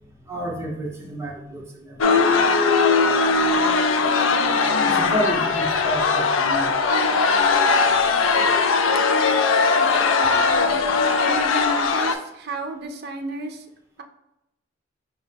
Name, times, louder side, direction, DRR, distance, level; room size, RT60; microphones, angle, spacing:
voice 1, 0.2-4.2 4.8-7.1, equal, 15° right, -2 dB, 0.8 m, -32 dB
sound 1, 2.0-12.2, left 4 dB, 75° left, 0.4 m, -19 dB
sound 2, 3.9-7.9, equal, 20° left, 0.5 m, -36 dB
voice 2, 9.8-10.8 11.2-13.6, right 2 dB, 50° right, 5 dB, 0.5 m, -32 dB
5.3 x 2.8 x 3.4 m, 0.87 s
head